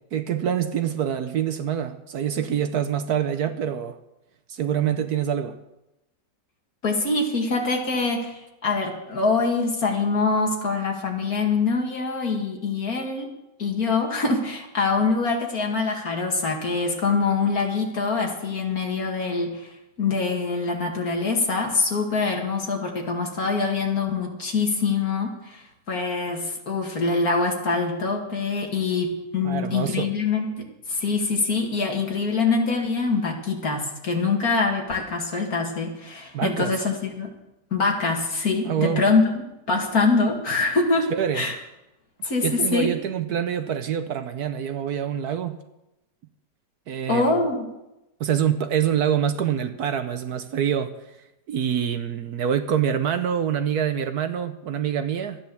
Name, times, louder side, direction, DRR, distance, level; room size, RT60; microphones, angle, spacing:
voice 1, 0.1-4.0 4.5-5.6 29.4-30.1 36.3-36.8 38.6-39.0 41.1-41.5 42.4-45.6 46.9-47.3 48.2-50.9 51.5-55.4, right 9 dB, 65° right, 1.2 m, -25 dB
voice 2, 6.8-13.3 13.6-19.7 20.0-37.3 37.7-39.4 39.7-41.5 42.2-42.9 47.1-47.7, left 4 dB, 55° left, 2.7 m, -24 dB
13.5 x 10.0 x 7.1 m
omnidirectional pair, 1.9 m